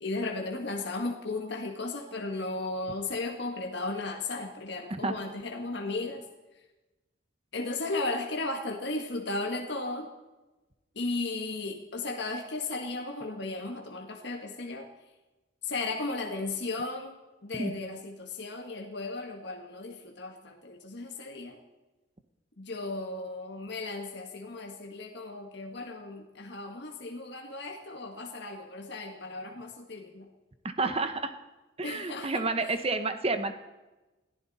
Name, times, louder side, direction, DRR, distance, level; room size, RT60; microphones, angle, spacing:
voice 1, 0.0-6.3 7.5-10.1 10.9-14.9 15.6-21.6 22.6-30.3 31.8-32.7, left 2 dB, 55° left, 2 dB, 1.6 m, -35 dB
voice 2, 30.8-31.3 31.8-33.5, right 3 dB, 30° right, 9 dB, 1.0 m, -30 dB
21.0 x 15.0 x 4.2 m, 1.1 s
head